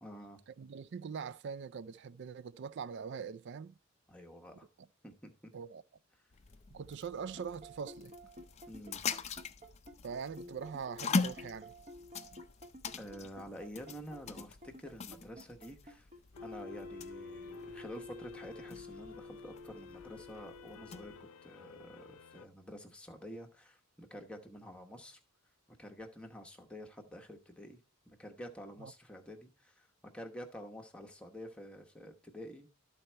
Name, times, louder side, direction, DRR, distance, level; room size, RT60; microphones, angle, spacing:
voice 1, 0.0-0.4 4.1-4.7 5.0-5.5 8.7-9.0 13.0-16.1 16.4-21.1 21.4-25.2 25.8-29.9 30.1-32.7, equal, 5° left, 0.9 m, -49 dB
voice 2, 0.6-3.7 5.5-5.8 6.7-8.1 10.0-11.7 28.8-28.9, right 6 dB, 55° right, 0.4 m, -42 dB
sound 1, 6.3-21.2, left 4 dB, 30° left, 0.4 m, -42 dB
sound 2, 7.2-21.2, left 2 dB, 35° right, 1.0 m, -50 dB
sound 3, 16.3-22.5, left 6 dB, 80° left, 0.6 m, -56 dB
12.5 x 4.1 x 4.4 m
head